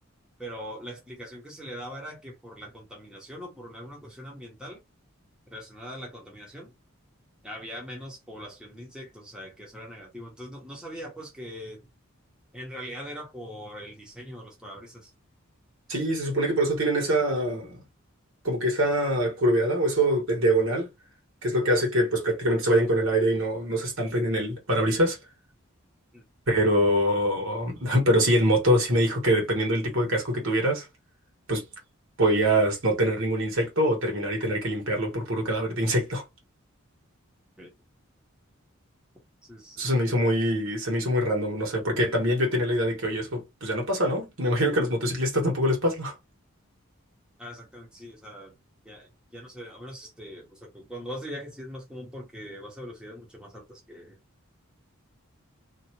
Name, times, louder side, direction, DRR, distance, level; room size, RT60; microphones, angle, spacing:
voice 1, 0.4-4.8 5.5-6.7 7.4-11.8 12.5-15.1 21.8-21.9 26.1-26.3 37.6-37.7 39.5-39.8 47.4-48.6 48.8-54.2, equal, 5° right, 0.9 m, -41 dB
voice 2, 15.9-17.8 18.4-20.9 21.4-25.2 26.5-30.9 31.5-31.6 32.2-36.2 39.8-46.1, equal, 65° right, 1.5 m, -24 dB
2.8 x 2.4 x 2.9 m
head